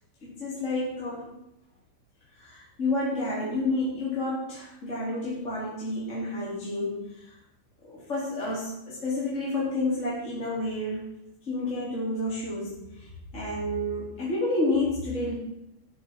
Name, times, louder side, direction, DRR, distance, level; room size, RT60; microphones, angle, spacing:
voice 1, 0.2-1.3 2.4-7.3 7.8-11.0 11.5-15.3, left 2 dB, 20° left, -7 dB, 3.9 m, -30 dB
13.0 x 12.5 x 4.7 m, 0.88 s
omnidirectional pair, 4.3 m